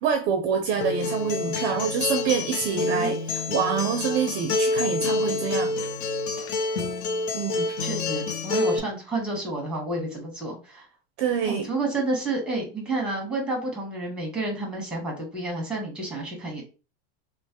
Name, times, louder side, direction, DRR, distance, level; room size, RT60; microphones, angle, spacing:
voice 1, 0.0-5.7 7.3-7.8 11.2-11.6, right 6 dB, 35° right, 4 dB, 0.5 m, -26 dB
Acoustic guitar, 0.8-8.8, left 2 dB, 75° left, 0.6 m, -27 dB
voice 2, 2.7-3.1 6.8-6.9 7.8-10.8 11.5-16.6, right 2 dB, 5° right, 0 dB, 1.0 m, -30 dB
3.1 x 2.0 x 2.8 m, 0.33 s
supercardioid pair, 140°, 33 cm